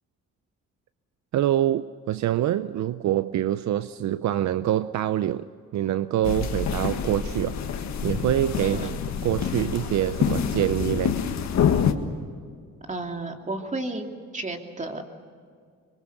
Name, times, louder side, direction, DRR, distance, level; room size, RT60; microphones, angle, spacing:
voice 1, 1.3-7.6 8.0-11.2, right 12 dB, 65° right, 0.6 m, -25 dB
sound 1, 6.2-11.9, left 8 dB, 65° left, 1.8 m, -26 dB
voice 2, 8.6-8.9 12.9-15.0, right 2 dB, 25° right, 2.9 m, -32 dB
25.5 x 23.5 x 6.7 m
cardioid pair, 90°, 30 cm